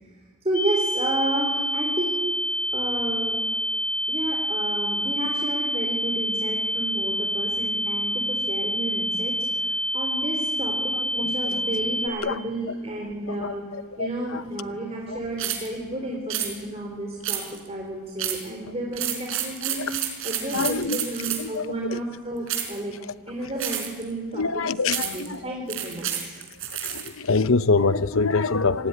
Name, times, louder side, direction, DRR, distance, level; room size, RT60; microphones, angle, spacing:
voice 1, 0.4-2.3 2.7-3.4 4.1-13.7 14.0-19.9 20.2-23.0 23.3-24.4 25.0-26.4, right 1 dB, 30° right, 3.8 m, -31 dB
sound 1, 0.5-12.1, equal, 85° left, 4.1 m, -27 dB
voice 2, 11.8-12.4 13.3-14.4 15.1-15.2 19.8-20.0 20.5-21.1 21.4-22.0 24.3-25.4 26.8-28.9, left 4 dB, 65° left, 0.8 m, -25 dB
sound 2, 15.4-15.7 16.3-16.5 17.2-17.7 18.2-18.5 18.9-21.6 22.5-22.8 23.6-24.0 24.9-25.3 25.7-27.1, right 10 dB, 65° right, 4.9 m, -29 dB
27.0 x 19.0 x 9.9 m
head